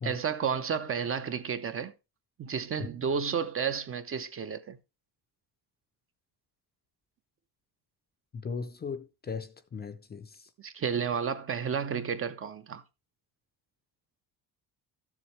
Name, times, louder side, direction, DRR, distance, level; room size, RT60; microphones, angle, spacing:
voice 1, 0.0-1.9 2.4-4.8 10.6-12.8, right 7 dB, 35° right, 0.5 m, -31 dB
voice 2, 8.3-10.3, left 5 dB, 25° left, 0.5 m, -37 dB
13.0 x 7.2 x 3.2 m
cardioid pair, 175°, 42 cm